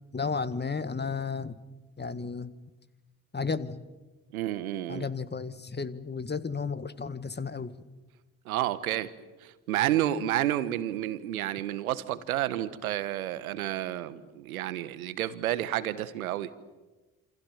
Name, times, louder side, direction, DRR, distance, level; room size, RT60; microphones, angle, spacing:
voice 1, 0.1-1.6 2.0-2.5 3.3-3.8 4.9-7.8, left 5 dB, 25° left, 13 dB, 1.8 m, -33 dB
voice 2, 4.3-5.1 8.4-9.1 9.4-16.5, right 13 dB, 85° right, 14 dB, 1.3 m, -30 dB
27.5 x 27.0 x 7.3 m, 1.2 s
hypercardioid pair, 45°, 42 cm